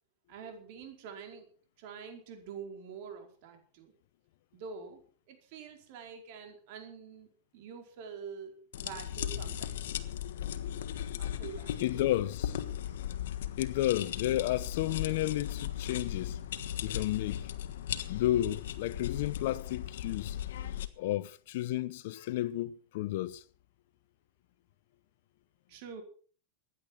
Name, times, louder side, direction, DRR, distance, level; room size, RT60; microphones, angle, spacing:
voice 1, 0.3-1.5 1.8-3.9 4.5-5.0 5.3-10.0 11.2-11.9 25.7-26.0, right 6 dB, 55° right, 4.7 m, -46 dB
sound 1, 8.7-20.9, left 10 dB, 85° left, 1.4 m, -37 dB
voice 2, 11.8-12.6 13.6-16.4 16.8-17.4 18.1-20.4 21.0-23.4, left 14 dB, 65° left, 1.0 m, -32 dB
16.0 x 10.5 x 6.1 m
supercardioid pair, 145°, 0 cm